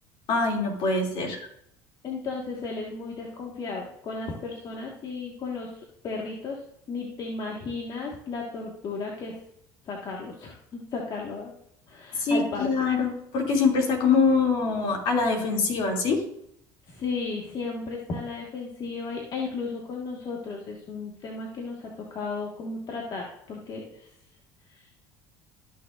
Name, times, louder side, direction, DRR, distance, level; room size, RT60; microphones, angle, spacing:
voice 1, 0.3-1.4 12.2-16.2, left 4 dB, 65° left, 0 dB, 2.8 m, -24 dB
voice 2, 2.0-5.7 6.0-6.6 6.9-9.4 9.9-11.5 11.9-12.9 16.9-24.1 24.8-24.9, left 4 dB, 45° left, -1 dB, 1.7 m, -34 dB
13.0 x 6.6 x 2.6 m, 0.73 s
hypercardioid pair, 80°, 9 cm